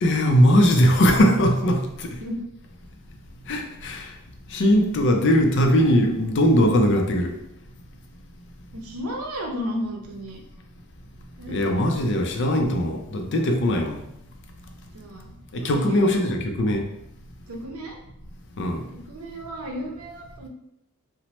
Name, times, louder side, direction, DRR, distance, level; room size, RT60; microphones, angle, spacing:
voice 1, 0.0-2.1 3.5-4.1 4.5-7.3 11.5-14.0 15.5-16.9 18.6-18.8, equal, 55° left, 3 dB, 0.4 m, -20 dB
voice 2, 2.0-2.4 8.7-10.4 11.4-11.9 14.9-15.3 15.6-16.3 17.5-18.0 18.9-20.5, equal, 85° right, 1 dB, 0.6 m, -33 dB
2.9 x 2.0 x 3.0 m, 0.79 s
head